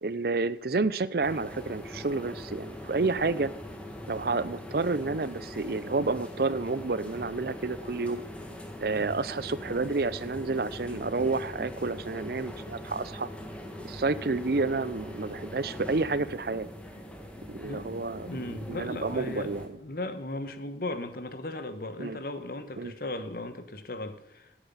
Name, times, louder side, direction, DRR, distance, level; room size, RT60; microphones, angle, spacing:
voice 1, 0.0-3.5 4.1-8.2 8.8-13.3 13.8-16.7 17.5-18.3 18.7-19.7 22.0-22.2 22.8-22.9, right 3 dB, 55° right, 16 dB, 0.6 m, -30 dB
sound 1, 1.2-19.7, left 1 dB, 5° left, 1.7 m, -42 dB
voice 2, 17.6-24.5, left 2 dB, 50° left, 10 dB, 1.2 m, -37 dB
16.5 x 9.0 x 5.7 m, 0.93 s
head